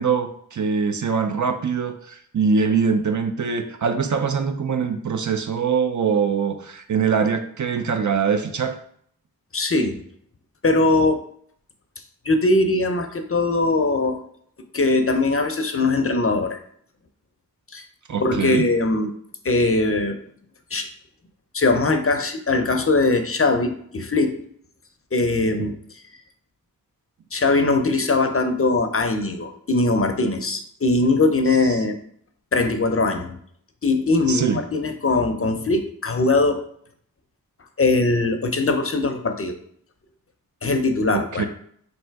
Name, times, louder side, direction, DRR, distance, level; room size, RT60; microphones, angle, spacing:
voice 1, 0.0-8.7 18.1-18.7 31.7-31.8 34.3-34.6 41.1-41.5, right 6 dB, 55° right, 8 dB, 0.5 m, -23 dB
voice 2, 9.5-10.0 10.6-11.2 12.3-14.2 14.7-16.6 17.7-17.9 18.2-19.1 19.4-20.2 20.7-20.9 21.5-24.4 25.1-25.7 27.3-32.0 32.5-33.4 33.8-36.6 37.8-39.6 40.6-41.5, left 2 dB, 35° left, 6 dB, 0.5 m, -21 dB
3.3 x 2.6 x 4.5 m, 0.63 s
cardioid pair, 45°, 37 cm